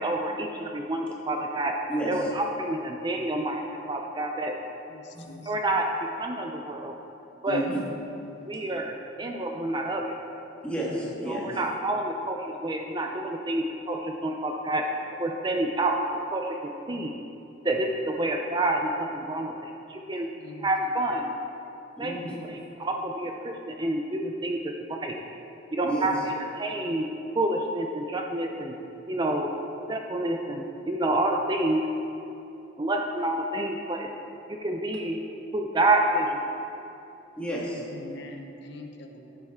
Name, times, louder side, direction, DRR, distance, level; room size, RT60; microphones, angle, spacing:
voice 1, 0.0-1.7 2.1-3.6 3.9-4.5 5.5-5.9 6.2-6.9 7.4-7.6 8.4-10.0 11.3-14.8 15.2-16.0 16.3-17.1 17.6-20.3 20.6-21.3 22.0-25.2 25.7-27.1 27.3-28.7 29.1-29.5 29.9-31.9 32.8-34.1 34.6-35.2 35.5-36.4, right 1 dB, 25° right, 2 dB, 0.5 m, -28 dB
voice 2, 4.9-5.5 20.3-21.1 37.9-39.4, left 2 dB, 65° left, 3 dB, 0.8 m, -44 dB
voice 3, 7.5-7.8 10.6-11.6 22.0-22.4 25.8-26.1 37.4-37.8, right 1 dB, 5° left, -5 dB, 1.8 m, -31 dB
14.0 x 7.6 x 3.6 m, 2.8 s
head